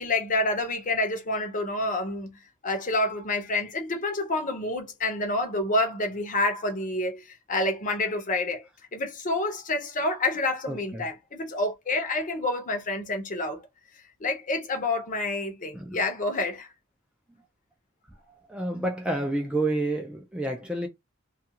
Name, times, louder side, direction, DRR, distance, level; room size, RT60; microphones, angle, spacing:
voice 1, 0.0-2.3 2.6-7.2 7.5-8.6 8.9-13.6 14.2-16.7, left 2 dB, 40° left, 0.7 m, -28 dB
voice 2, 10.7-11.1 15.7-16.0 18.3-20.9, right 2 dB, 5° right, 0.4 m, -29 dB
2.4 x 2.3 x 2.8 m
head